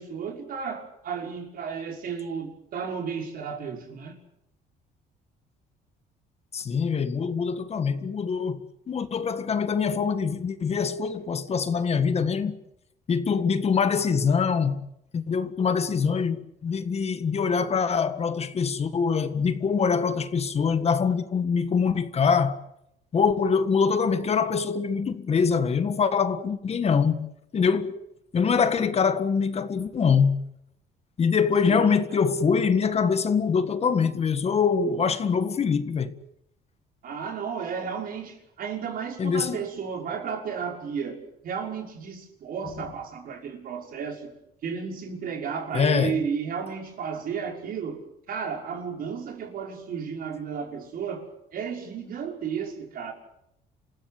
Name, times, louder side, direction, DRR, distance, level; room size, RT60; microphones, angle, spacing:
voice 1, 0.0-4.2 31.7-32.2 37.0-44.3 44.6-53.1, right 6 dB, 60° right, 5.8 m, -33 dB
voice 2, 6.5-12.6 13.1-14.9 15.1-22.6 23.1-28.0 28.3-30.4 31.2-36.1 39.2-39.6 45.7-46.2, left 6 dB, 40° left, 1.7 m, -24 dB
27.5 x 16.0 x 9.6 m
cardioid pair, 110°, 17 cm